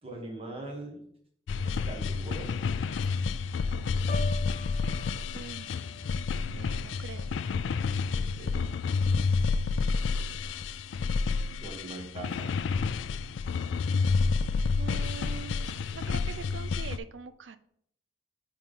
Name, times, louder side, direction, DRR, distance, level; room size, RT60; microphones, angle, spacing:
voice 1, 0.0-1.0 1.6-2.5 8.1-8.6 11.6-12.5, right 2 dB, 35° right, 1 dB, 1.6 m, -41 dB
sound 1, 1.5-17.0, left 4 dB, 85° left, 0.4 m, -29 dB
Piano, 4.1-8.0 8.4-8.8, left 1 dB, 50° left, 1.0 m, -45 dB
voice 2, 5.3-6.2 6.6-7.3 14.8-17.6, right 5 dB, 85° right, 13 dB, 0.5 m, -44 dB
9.2 x 4.1 x 3.7 m, 0.67 s
head